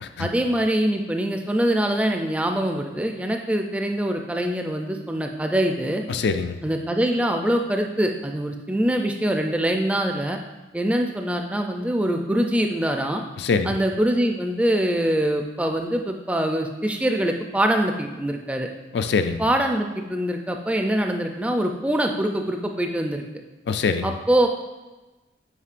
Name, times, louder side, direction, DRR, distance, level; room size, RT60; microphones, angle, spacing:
voice 1, 0.2-6.0 6.6-10.4 10.7-13.2 13.6-18.7 19.4-23.2 24.0-24.5, right 1 dB, 5° right, 3 dB, 0.3 m, -24 dB
voice 2, 6.1-6.6 13.4-13.8 18.9-19.4 23.7-24.1, left 4 dB, 65° left, 9 dB, 0.4 m, -24 dB
8.2 x 5.1 x 2.5 m, 1.1 s
head